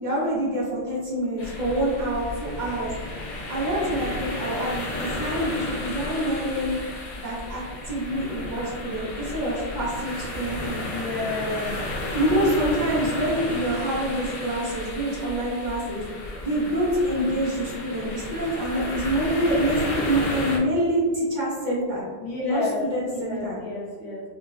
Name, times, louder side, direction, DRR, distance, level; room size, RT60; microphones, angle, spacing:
voice 1, 0.0-2.9 3.5-6.8 7.2-10.8 12.1-16.1 16.4-22.1 22.4-23.6, right 1 dB, 45° right, -6 dB, 0.9 m, -26 dB
sound 1, 1.4-20.6, left 1 dB, 50° left, 0.7 m, -33 dB
voice 2, 10.9-11.8 22.2-22.8 23.1-24.2, left 3 dB, 70° left, -6 dB, 1.1 m, -30 dB
3.8 x 2.1 x 2.4 m, 1.5 s
omnidirectional pair, 1.2 m